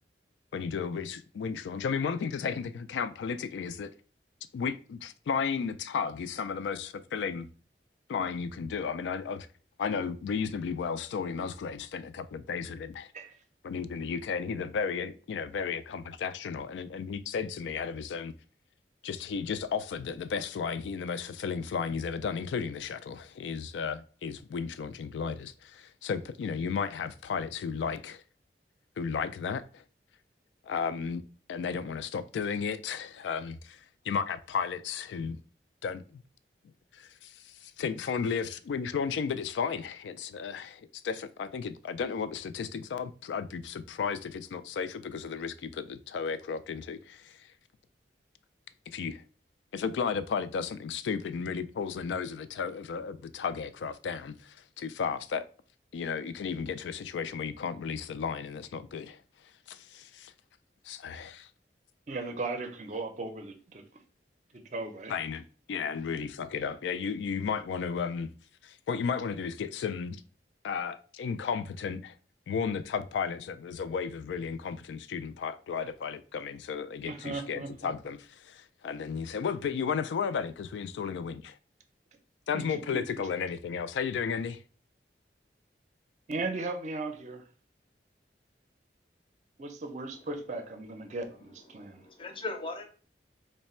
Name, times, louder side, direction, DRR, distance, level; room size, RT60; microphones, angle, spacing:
voice 1, 0.5-3.9 4.5-7.5 8.1-9.5 9.8-13.1 13.6-18.3 19.0-28.2 29.0-29.8 30.6-31.2 31.5-35.4 35.8-36.2 36.9-47.5 48.9-49.2 49.7-55.4 55.9-59.2 59.7-60.3 60.8-61.5 65.1-68.3 68.6-70.2 70.6-72.1 72.5-81.6 82.5-84.6, left 6 dB, 80° left, 0.3 m, -34 dB
voice 2, 62.1-63.8 64.5-65.1 77.1-77.9 82.5-82.8 86.3-87.4 89.6-92.0, right 3 dB, 40° right, 0.5 m, -37 dB
voice 3, 91.7-92.8, left 3 dB, 30° left, 0.6 m, -39 dB
3.2 x 2.1 x 4.2 m
head